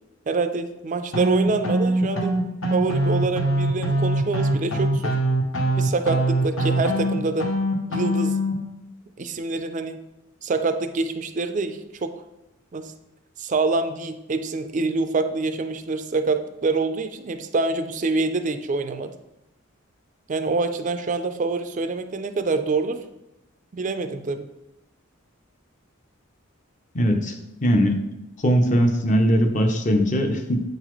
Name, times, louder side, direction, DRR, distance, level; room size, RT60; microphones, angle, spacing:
voice 1, 0.3-2.3 2.7-5.1 5.8-7.5 7.9-8.4 9.2-10.0 10.4-12.1 12.7-12.9 13.4-19.1 20.3-23.0 23.7-24.5, right 3 dB, 40° right, 8 dB, 0.4 m, -26 dB
sound 1, 1.1-8.5, right 1 dB, 75° left, 1.0 m, -23 dB
voice 2, 26.9-27.3 27.6-28.0 28.4-30.6, equal, 35° left, 5 dB, 0.6 m, -20 dB
8.2 x 3.9 x 3.1 m, 0.93 s
head